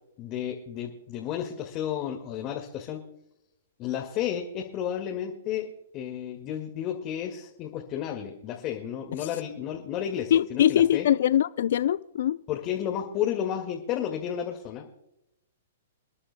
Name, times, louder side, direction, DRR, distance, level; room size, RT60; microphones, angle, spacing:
voice 1, 0.2-3.0 3.8-5.7 5.9-11.1 12.5-14.9, left 10 dB, 35° left, 1.8 m, -32 dB
voice 2, 10.3-12.4, left 11 dB, 60° left, 0.4 m, -22 dB
29.0 x 11.0 x 2.2 m
hypercardioid pair, 120°, 0 cm